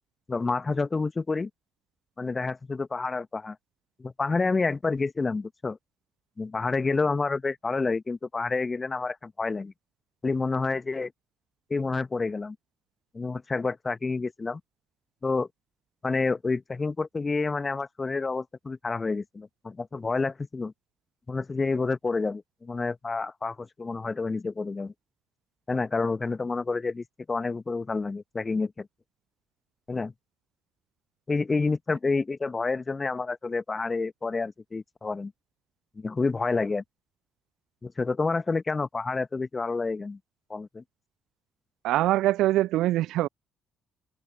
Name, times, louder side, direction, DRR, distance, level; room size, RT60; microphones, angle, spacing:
voice 1, 0.3-1.5 2.2-3.5 4.0-5.8 6.4-9.7 10.2-11.1 11.7-12.5 13.1-14.6 15.2-15.5 16.0-20.7 21.3-24.9 25.7-28.9 29.9-30.1 31.3-35.3 36.0-36.8 37.8-40.2 40.5-40.8, left 4 dB, 25° left, 1.6 m, -29 dB
voice 2, 41.8-43.3, right 15 dB, 60° right, 0.3 m, -23 dB
open air
figure-of-eight pair, 45°, 0 cm